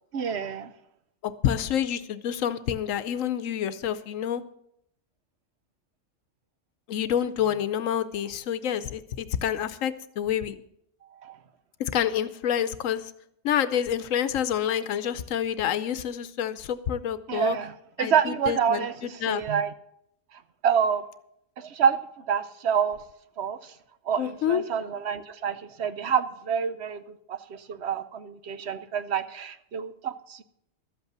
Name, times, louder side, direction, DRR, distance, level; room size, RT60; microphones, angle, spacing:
voice 1, 0.1-0.7 11.2-11.4 17.3-19.7 20.6-21.0 21.6-22.0 22.3-23.0 23.4-23.7 24.1-27.0 27.3-30.4, right 7 dB, 60° right, 12 dB, 0.9 m, -27 dB
voice 2, 1.2-4.4 6.9-10.5 11.8-13.1 13.4-17.6 18.0-19.4 24.2-24.6, left 9 dB, 85° left, 13 dB, 1.1 m, -28 dB
13.0 x 8.2 x 6.7 m, 0.75 s
omnidirectional pair, 1.3 m